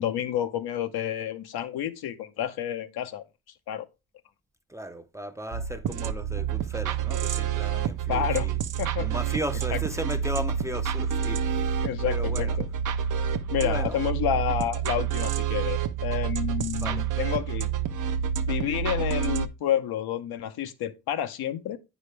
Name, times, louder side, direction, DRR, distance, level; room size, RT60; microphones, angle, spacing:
voice 1, 0.0-3.2 3.7-3.9 8.1-8.5 8.8-9.2 9.7-9.8 11.8-12.7 13.5-17.7 18.4-21.8, left 10 dB, 80° left, 0.8 m, -29 dB
voice 2, 4.7-8.6 9.0-12.6 13.2-13.3 13.6-14.0 16.8-17.0, right 1 dB, 10° right, 0.5 m, -36 dB
sound 1, 5.5-19.5, right 8 dB, 55° right, 0.7 m, -28 dB
9.0 x 4.9 x 3.2 m
cardioid pair, 90°, 37 cm